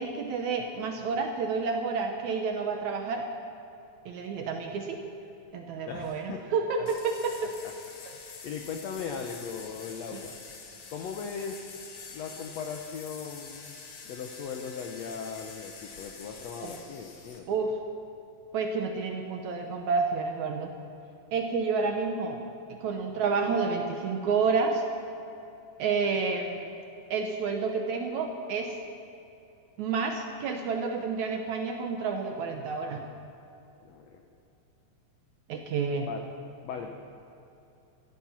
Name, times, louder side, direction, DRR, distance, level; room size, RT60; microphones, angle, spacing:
voice 1, 0.0-3.3 4.1-5.0 5.5-7.6 16.6-16.7 17.5-17.8 18.5-20.8 21.3-22.4 22.7-24.8 25.8-26.7 27.1-28.8 29.8-33.1 35.5-36.1, right 4 dB, 70° right, 3 dB, 1.9 m, -29 dB
voice 2, 5.9-6.4 7.6-7.7 8.1-10.3 10.9-11.6 12.1-13.7 14.0-17.7 33.8-34.2 36.1-36.2 36.6-36.9, left 6 dB, 85° left, 3 dB, 1.5 m, -38 dB
sound 1, 6.9-17.4, left 5 dB, 55° left, 1.4 m, -46 dB
15.5 x 13.5 x 5.9 m, 2.8 s
omnidirectional pair, 4.2 m